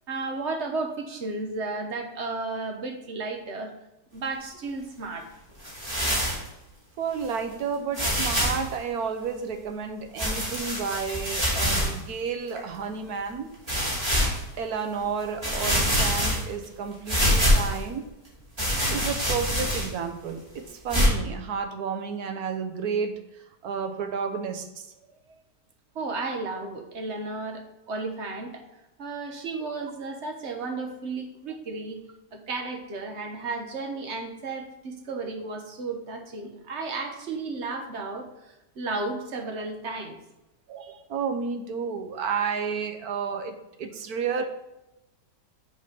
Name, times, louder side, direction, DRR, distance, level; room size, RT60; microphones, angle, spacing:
voice 1, 0.1-3.7 4.1-5.3 25.9-28.7 29.0-32.0 32.3-40.2, right 3 dB, 45° right, 4 dB, 1.2 m, -33 dB
sound 1, 5.6-6.5 7.2-7.3 7.9-8.7 10.2-12.0 12.6-12.7 13.7-14.4 15.0-15.1 15.4-16.6 17.1-17.8 18.6-20.0 20.9-21.1, equal, 20° right, 2.8 m, -25 dB
voice 2, 7.0-13.5 14.6-18.1 18.9-24.9 40.7-44.5, right 6 dB, 65° right, 6 dB, 1.2 m, -31 dB
7.4 x 4.3 x 5.4 m, 0.96 s
omnidirectional pair, 1.8 m